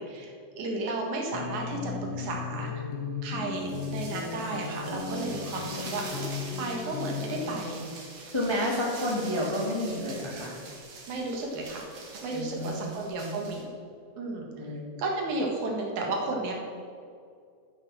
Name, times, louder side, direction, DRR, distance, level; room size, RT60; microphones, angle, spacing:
voice 1, 0.0-2.8 3.2-7.8 11.1-11.9 12.2-13.7 14.2-14.5 15.0-16.5, right 2 dB, 80° right, 0 dB, 3.0 m, -33 dB
sound 1, 1.3-7.7, left 5 dB, 60° left, 1.8 m, -36 dB
sound 2, 3.5-13.6, right 3 dB, 60° right, 2.9 m, -44 dB
voice 2, 8.3-10.5 12.3-13.3 14.5-14.8, left 1 dB, 10° left, -3 dB, 1.4 m, -30 dB
12.5 x 6.3 x 6.2 m, 2.3 s
omnidirectional pair, 3.3 m